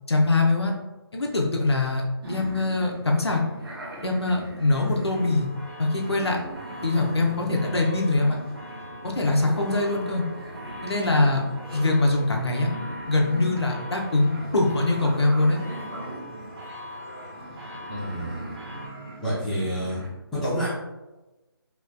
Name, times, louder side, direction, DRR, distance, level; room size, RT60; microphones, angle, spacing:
voice 1, 0.1-0.7 1.1-3.4 4.0-5.5 5.8-6.4 6.8-8.4 9.0-10.2 10.8-11.4 11.7-12.7 13.1-15.6, left 2 dB, 85° left, 0 dB, 0.7 m, -23 dB
sound 1, 2.2-20.1, right 1 dB, 65° right, 1.2 m, -40 dB
sound 2, 5.1-18.9, left 1 dB, 85° right, 1.5 m, -41 dB
voice 2, 17.9-18.5 19.2-20.0 20.3-20.7, equal, ahead, -15 dB, 0.8 m, -28 dB
3.3 x 2.9 x 2.2 m, 1.1 s
figure-of-eight pair, 155°, 13 cm